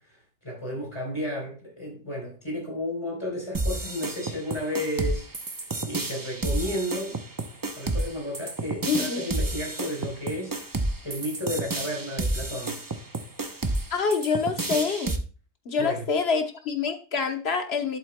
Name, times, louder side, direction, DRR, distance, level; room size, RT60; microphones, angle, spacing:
voice 1, 0.4-5.2 5.6-7.2 7.8-10.5 11.0-12.8 15.8-16.0, equal, 25° left, -1 dB, 3.7 m, -32 dB
sound 1, 3.5-15.2, right 2 dB, 25° right, 0.5 m, -30 dB
voice 2, 8.9-9.2 13.9-15.1 15.7-18.0, left 5 dB, 60° left, 6 dB, 1.2 m, -26 dB
11.0 x 7.4 x 2.2 m, 0.37 s
omnidirectional pair, 1.2 m